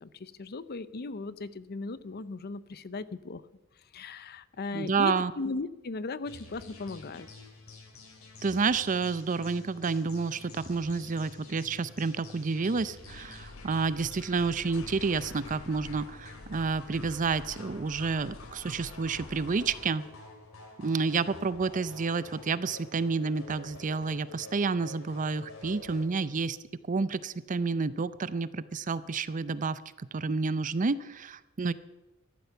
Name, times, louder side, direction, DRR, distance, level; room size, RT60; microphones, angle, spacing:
voice 1, 0.0-3.4 3.9-7.3, left 3 dB, 50° left, 16 dB, 0.6 m, -37 dB
voice 2, 4.7-5.3 8.4-20.0 20.8-26.6 26.9-29.8 30.1-31.7, right 4 dB, 40° right, 16 dB, 0.5 m, -30 dB
sound 1, 6.3-26.1, left 3 dB, 75° left, 2.9 m, -49 dB
sound 2, 13.1-19.9, left 3 dB, 90° left, 1.0 m, -48 dB
14.0 x 11.5 x 6.9 m, 1.1 s
head